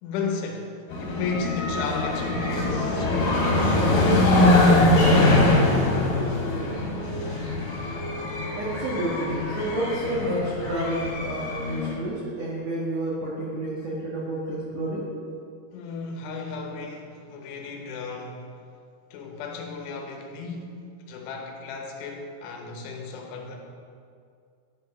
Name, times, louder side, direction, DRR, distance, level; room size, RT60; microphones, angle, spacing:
voice 1, 0.0-5.9 15.7-18.5 19.1-23.6, left 4 dB, 85° left, 2 dB, 3.4 m, -34 dB
sound 1, 0.9-11.9, left 2 dB, 65° left, 3.8 m, -23 dB
voice 2, 8.6-15.1, right 1 dB, 80° right, -6 dB, 1.5 m, -30 dB
11.0 x 5.8 x 5.5 m, 2.3 s
omnidirectional pair, 5.4 m